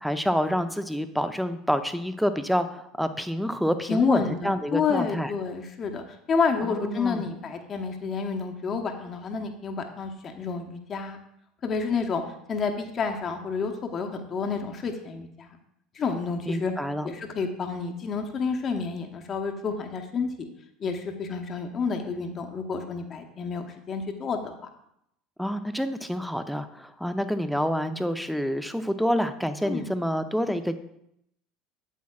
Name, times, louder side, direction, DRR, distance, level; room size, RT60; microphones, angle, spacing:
voice 1, 0.0-5.3 6.6-7.2 16.4-17.1 25.4-30.8, equal, ahead, 9 dB, 0.7 m, -28 dB
voice 2, 3.9-11.2 11.6-12.2 12.5-15.5 15.9-16.7 17.0-20.5 20.8-24.5 29.6-29.9, left 5 dB, 40° left, 4 dB, 1.1 m, -29 dB
8.3 x 8.2 x 2.4 m, 0.77 s
hypercardioid pair, 70°, 0 cm